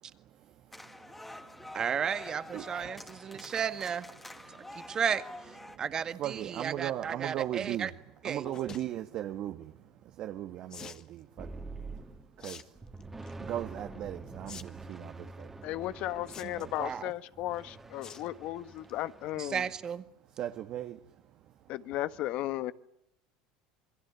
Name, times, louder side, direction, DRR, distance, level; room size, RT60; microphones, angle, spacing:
sound 1, 0.7-5.8, left 1 dB, 5° left, 2.4 m, -47 dB
voice 1, 1.7-4.1 4.8-5.2 5.8-7.9 8.2-8.5 16.8-17.1 19.4-20.0, right 7 dB, 30° right, 1.9 m, -33 dB
voice 2, 6.2-7.9 8.2-9.7 10.2-11.5 12.4-12.6 13.4-15.5 16.5-16.7 20.4-21.0, right 12 dB, 50° right, 1.6 m, -37 dB
sound 2, 8.4-8.8 10.7-11.1 12.4-12.6 13.0-13.3 14.5-14.6 14.9-15.0 16.3-16.8 18.0-18.3 18.7-18.9 19.3-19.4 19.6-19.7, left 7 dB, 30° left, 1.8 m, -46 dB
sound 3, 11.4-12.4 12.7-19.8, right 3 dB, 10° right, 2.5 m, -46 dB
voice 3, 15.6-19.6 21.7-22.7, left 15 dB, 55° left, 1.4 m, -35 dB
28.0 x 22.5 x 8.3 m
supercardioid pair, 135°, 2 cm